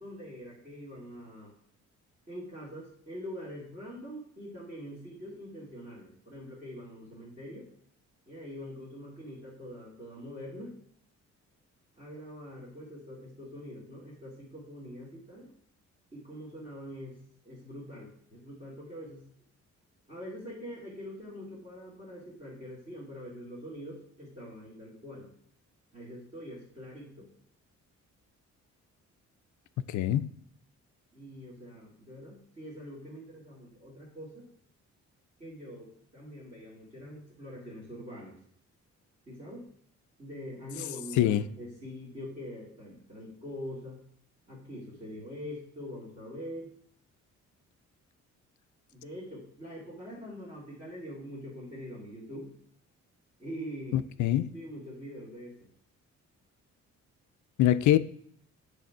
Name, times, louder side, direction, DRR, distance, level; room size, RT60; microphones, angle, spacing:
voice 1, 0.0-1.5 2.3-7.7 8.3-10.7 12.0-15.5 16.1-17.2 17.4-19.2 20.1-25.3 25.9-27.2 31.1-34.5 35.4-38.4 39.3-39.6 40.2-44.0 44.5-46.7 48.9-52.5 53.4-54.0 54.5-55.5, equal, 25° right, 1.8 m, -44 dB
voice 2, 29.9-30.3 41.2-41.4 53.9-54.5 57.6-58.0, left 12 dB, 80° left, 0.5 m, -24 dB
9.1 x 3.4 x 5.5 m
cardioid pair, 175°, 29 cm